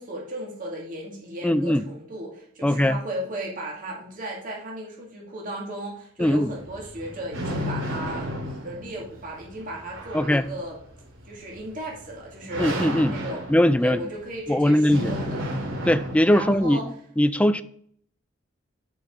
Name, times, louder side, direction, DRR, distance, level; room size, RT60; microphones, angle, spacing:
voice 1, 0.0-8.4 8.6-10.8 11.3-13.4 13.8-15.4 16.3-16.9, right 1 dB, 45° right, 2.1 m, -35 dB
voice 2, 1.4-1.8 2.6-3.0 6.2-6.5 10.1-10.4 12.6-13.2 13.5-14.0 14.5-15.2 15.9-16.8 17.2-17.6, left 1 dB, 5° left, 0.4 m, -20 dB
sound 1, 6.2-16.6, equal, 85° right, 2.5 m, -34 dB
10.5 x 4.8 x 5.3 m
head